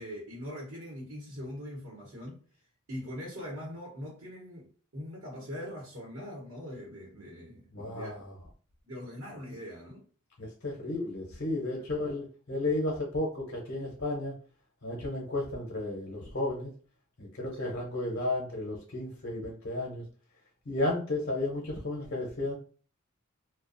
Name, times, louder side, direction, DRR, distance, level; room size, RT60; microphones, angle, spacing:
voice 1, 0.0-2.4 2.9-8.2 8.8-10.0 11.7-11.8 17.5-17.8, equal, 75° right, -4 dB, 0.9 m, -42 dB
voice 2, 7.7-8.3 10.4-14.3 14.8-16.7 17.2-20.0 20.7-22.6, left 2 dB, 55° left, -1 dB, 0.7 m, -33 dB
2.4 x 2.1 x 2.5 m, 0.41 s
head